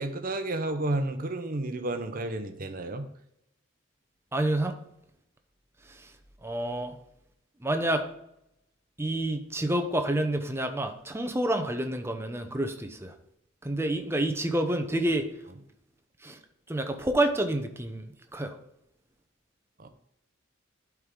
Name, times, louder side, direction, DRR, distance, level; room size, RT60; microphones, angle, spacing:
voice 1, 0.0-3.1 19.8-19.9, right 2 dB, 45° right, 7 dB, 0.8 m, -31 dB
voice 2, 4.3-4.7 5.9-6.1 6.4-7.0 7.6-8.1 9.0-13.1 13.6-15.3 16.2-16.4 16.7-18.5, right 1 dB, 10° right, 6 dB, 0.7 m, -28 dB
11.5 x 4.7 x 3.8 m, 0.79 s
head